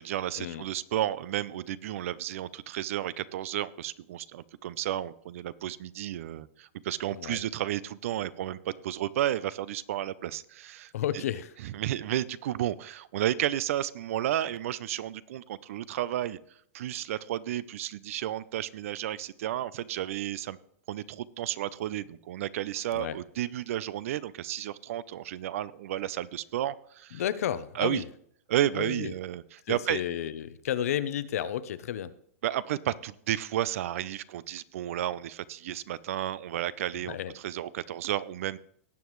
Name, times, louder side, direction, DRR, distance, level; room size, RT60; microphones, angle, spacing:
voice 1, 0.0-11.2 11.6-16.4 16.7-20.6 20.9-27.2 27.7-28.0 28.5-30.0 32.4-38.6, right 12 dB, 65° right, 19 dB, 0.6 m, -32 dB
voice 2, 10.9-11.5 22.9-23.2 27.1-28.1 28.7-29.1 29.7-32.1 37.1-37.3, left 10 dB, 75° left, 14 dB, 0.8 m, -32 dB
18.0 x 7.3 x 3.1 m, 0.67 s
supercardioid pair, 150°, 8 cm